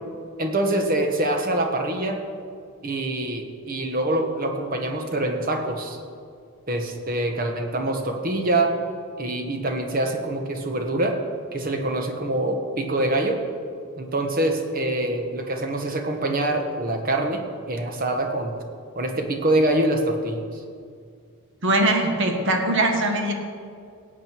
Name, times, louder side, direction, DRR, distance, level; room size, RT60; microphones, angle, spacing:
voice 1, 0.4-2.2 2.8-6.0 6.7-8.8 9.2-11.2 11.5-13.4 14.0-18.5 18.9-20.6, right 1 dB, 40° right, 4 dB, 1.3 m, -25 dB
voice 2, 21.6-23.3, right 1 dB, 55° right, 3 dB, 1.5 m, -21 dB
17.0 x 8.5 x 4.6 m, 2.2 s
head